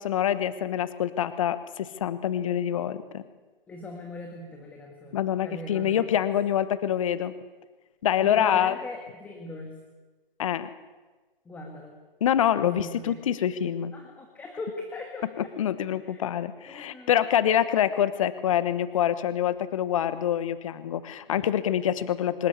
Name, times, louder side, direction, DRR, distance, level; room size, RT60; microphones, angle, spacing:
voice 1, 0.0-3.2 5.1-7.3 8.0-8.8 10.4-10.7 12.2-13.9 15.6-22.5, left 10 dB, 35° left, 14 dB, 1.1 m, -26 dB
voice 2, 3.7-6.1 8.2-9.7 11.5-12.0 12.6-13.2 13.9-15.5 16.0-16.3 16.7-17.1, left 2 dB, 5° left, 2 dB, 1.7 m, -40 dB
25.0 x 14.0 x 9.7 m, 1.3 s
hypercardioid pair, 155°, 29 cm